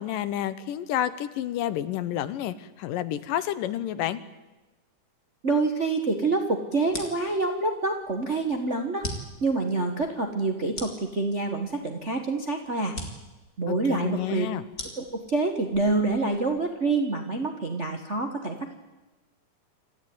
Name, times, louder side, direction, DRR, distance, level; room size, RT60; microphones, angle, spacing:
voice 1, 0.0-4.2 13.7-14.6, left 11 dB, 85° left, 14 dB, 2.7 m, -30 dB
voice 2, 5.4-9.1 9.4-12.9 13.6-14.5 15.0-18.7, right 3 dB, 45° right, 4 dB, 0.9 m, -27 dB
sound 1, 6.8-16.7, left 2 dB, 30° left, 3.0 m, -42 dB
27.0 x 14.0 x 9.6 m, 1.1 s
omnidirectional pair, 3.8 m